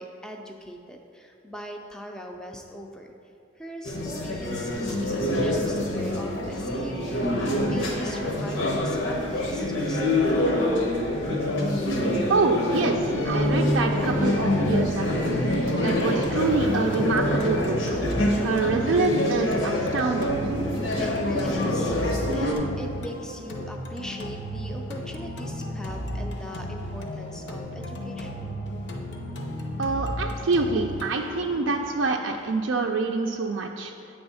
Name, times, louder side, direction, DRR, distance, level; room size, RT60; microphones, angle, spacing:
voice 1, 0.0-3.1 3.6-10.0 10.3-11.0 20.7-28.4, equal, 5° left, 1 dB, 0.4 m, -40 dB
sound 1, 3.8-22.6, left 1 dB, 85° left, 1.0 m, -25 dB
voice 2, 12.3-15.3 15.8-18.0 18.4-20.4 29.8-33.9, right 3 dB, 80° right, 2 dB, 0.4 m, -26 dB
sound 2, 15.5-33.5, equal, 65° left, 0.7 m, -35 dB
8.6 x 3.5 x 5.5 m, 2.5 s
head